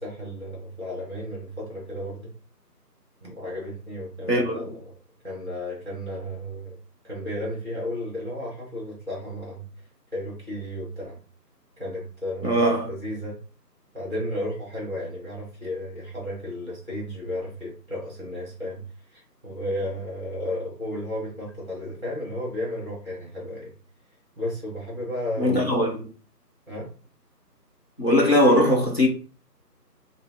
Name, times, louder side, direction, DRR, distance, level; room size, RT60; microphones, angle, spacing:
voice 1, 0.0-2.3 3.2-4.8 5.2-6.8 7.1-9.6 10.1-11.2 11.8-12.6 12.9-13.4 13.9-18.8 19.1-23.7 24.4-25.7 26.7-26.9, left 1 dB, 15° right, 1.6 m, -33 dB
voice 2, 12.4-12.9 25.4-26.0 28.0-29.1, equal, 40° left, 0.8 m, -20 dB
5.3 x 2.0 x 3.6 m
figure-of-eight pair, 175°, 49 cm